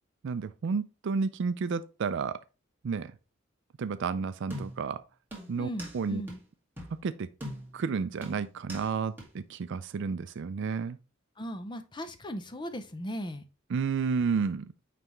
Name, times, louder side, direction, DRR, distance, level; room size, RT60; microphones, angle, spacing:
voice 1, 0.2-2.4 2.8-3.1 3.8-5.0 5.5-6.2 7.0-7.3 7.7-11.0 13.7-14.7, right 5 dB, 60° right, 0.4 m, -31 dB
sound 1, 4.5-4.9 5.3-6.0 6.3-6.4 6.8-7.0 7.4-7.8 8.2-8.9 9.2-9.3, equal, 10° right, 1.9 m, -41 dB
voice 2, 5.6-6.4 11.4-13.4, equal, 20° left, 0.6 m, -37 dB
9.2 x 3.4 x 3.0 m
head